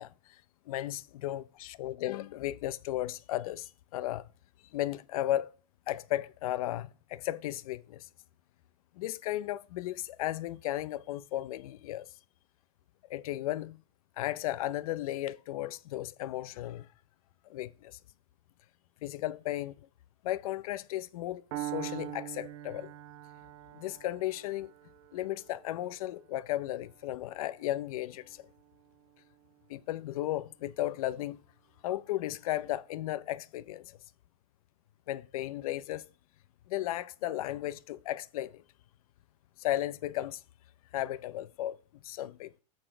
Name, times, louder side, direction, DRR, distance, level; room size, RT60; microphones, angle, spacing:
voice 1, 0.0-4.3 4.7-5.5 5.9-8.1 8.9-12.1 13.1-13.8 14.2-16.9 17.4-18.0 19.0-19.8 20.2-22.9 23.7-24.7 25.1-28.5 29.7-31.4 31.8-34.0 35.1-36.1 36.7-38.6 39.6-40.4 40.9-42.6, left 14 dB, 75° left, 0.6 m, -35 dB
Piano, 21.5-29.4, right 15 dB, 55° right, 0.8 m, -44 dB
7.7 x 4.3 x 6.6 m
supercardioid pair, 150°, 18 cm